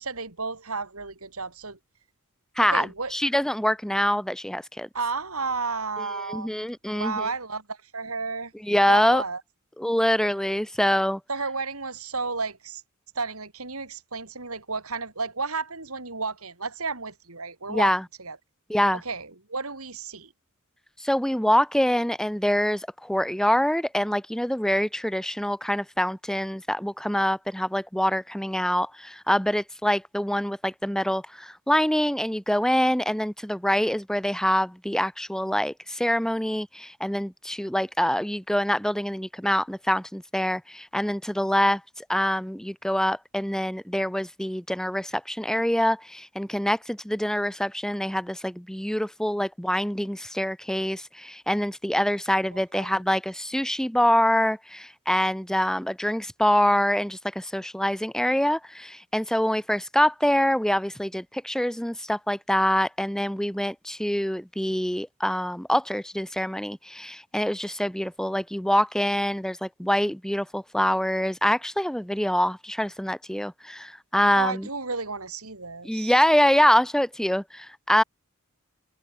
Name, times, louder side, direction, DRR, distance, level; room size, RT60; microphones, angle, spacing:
voice 1, 0.0-1.8 2.7-3.1 4.9-6.5 6.9-8.5 8.9-9.4 11.3-12.8 13.2-17.9 18.2-18.4 18.9-20.3 52.5-53.0 74.4-76.2, right 4 dB, 85° right, 5.3 m, -32 dB
voice 2, 2.6-4.9 6.3-7.2 8.6-9.2 9.8-11.2 17.7-18.0 18.7-19.0 21.0-74.7 75.8-78.0, equal, 5° left, 1.1 m, -25 dB
head